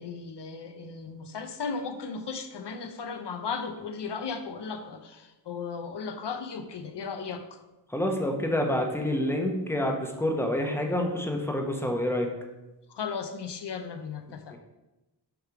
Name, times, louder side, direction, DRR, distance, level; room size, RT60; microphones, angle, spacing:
voice 1, 0.0-7.6 12.9-14.6, left 5 dB, 75° left, 8 dB, 0.6 m, -36 dB
voice 2, 7.9-12.3 14.5-14.6, left 1 dB, 5° left, 2 dB, 0.9 m, -28 dB
6.8 x 3.3 x 4.7 m, 1.0 s
wide cardioid pair, 80°, 42 cm